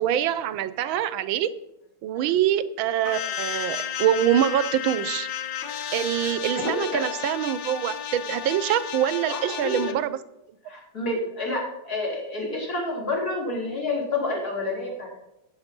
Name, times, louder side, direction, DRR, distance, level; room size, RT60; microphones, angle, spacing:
voice 1, 0.0-1.5 2.0-5.3 5.9-10.2, right 11 dB, 75° right, 14 dB, 1.5 m, -25 dB
sound 1, 3.0-9.9, left 9 dB, 70° left, 1.5 m, -33 dB
voice 2, 6.6-7.0 9.3-9.8 10.6-15.3, left 2 dB, 45° left, -2 dB, 4.1 m, -29 dB
13.5 x 9.0 x 5.3 m, 0.88 s
omnidirectional pair, 2.2 m